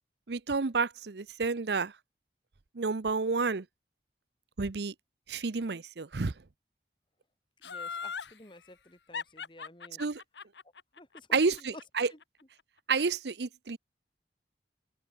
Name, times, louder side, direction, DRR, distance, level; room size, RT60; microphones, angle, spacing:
voice 1, 0.3-1.9 2.8-3.6 4.6-4.9 5.3-6.3 10.0-10.2 11.3-12.1 12.9-13.8, right 4 dB, 70° right, 0.7 m, -30 dB
Laughter, 7.6-8.3 9.1-12.2 12.6-12.7, left 5 dB, 85° left, 1.6 m, -39 dB
voice 2, 7.6-10.0 11.0-11.7 12.1-12.2, left 1 dB, 30° left, 2.7 m, -52 dB
open air
head